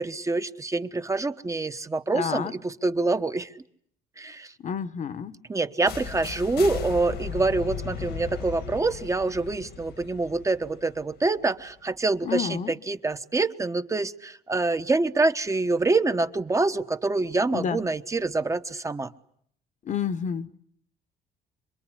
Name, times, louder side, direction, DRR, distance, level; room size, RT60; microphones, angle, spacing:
voice 1, 0.0-3.5 4.2-4.5 5.5-19.1, right 3 dB, 20° right, 1.2 m, -26 dB
voice 2, 2.1-2.5 4.6-5.4 12.2-12.7 17.5-17.8 19.8-20.6, left 7 dB, 45° left, 1.3 m, -29 dB
sound 1, 5.9-11.7, left 7 dB, 70° left, 2.0 m, -37 dB
26.5 x 22.0 x 10.0 m
cardioid pair, 110°, 17 cm